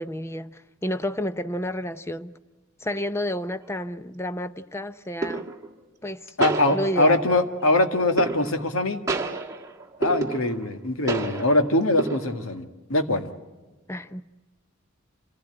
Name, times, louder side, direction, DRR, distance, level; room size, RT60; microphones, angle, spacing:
voice 1, 0.0-2.3 2.8-5.5 6.0-6.4 6.7-7.2 13.9-14.2, equal, 15° left, 0.7 m, -30 dB
sound 1, 3.6-3.9 5.2-5.7 6.4-7.3 8.2-8.8 9.1-10.8 11.1-11.7 12.0-12.6, right 3 dB, 15° right, 1.7 m, -30 dB
voice 2, 6.4-9.0 10.0-13.3, left 2 dB, 85° left, 1.8 m, -22 dB
26.5 x 16.0 x 8.9 m
head